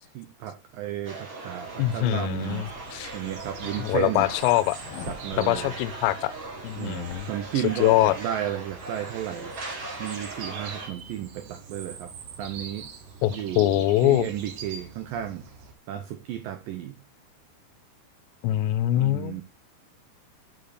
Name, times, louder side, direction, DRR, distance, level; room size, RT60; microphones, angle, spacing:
voice 1, 0.1-4.3 5.1-5.8 6.8-9.5 10.0-12.9 13.3-15.5 15.9-17.0 18.9-19.4, right 12 dB, 90° right, 2.0 m, -33 dB
sound 1, 1.0-10.9, right 2 dB, 35° right, 1.6 m, -40 dB
sound 2, 1.6-15.7, right 6 dB, 60° right, 2.2 m, -45 dB
voice 2, 1.8-3.1 3.8-4.8 5.4-6.3 6.6-7.3 7.8-8.2 13.2-14.3 18.4-19.4, left 15 dB, 90° left, 2.8 m, -23 dB
sound 3, 2.6-7.4, left 6 dB, 65° left, 2.9 m, -46 dB
8.3 x 6.5 x 4.2 m
omnidirectional pair, 4.9 m